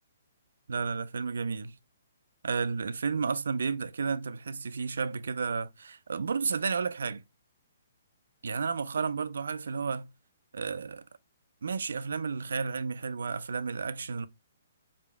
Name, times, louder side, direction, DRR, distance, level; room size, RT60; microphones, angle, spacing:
voice 1, 0.7-1.8 2.4-7.2 8.4-10.1 10.5-11.1 11.6-14.3, right 5 dB, 70° right, 0.5 m, -32 dB
4.8 x 2.8 x 3.4 m
figure-of-eight pair, 130°, 0 cm